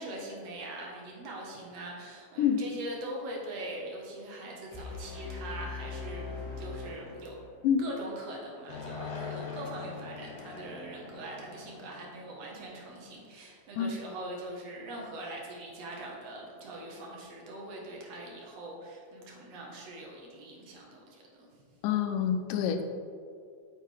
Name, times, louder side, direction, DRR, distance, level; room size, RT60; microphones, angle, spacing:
voice 1, 0.0-7.5 7.8-21.5, right 1 dB, 60° right, -2 dB, 2.1 m, -42 dB
sound 1, 4.7-7.7, left 4 dB, 35° left, 1.1 m, -41 dB
sound 2, 8.7-13.0, left 5 dB, 70° left, 2.4 m, -43 dB
voice 2, 21.8-22.8, left 8 dB, 90° left, 7 dB, 2.2 m, -27 dB
8.2 x 6.8 x 3.3 m, 2.3 s
omnidirectional pair, 3.7 m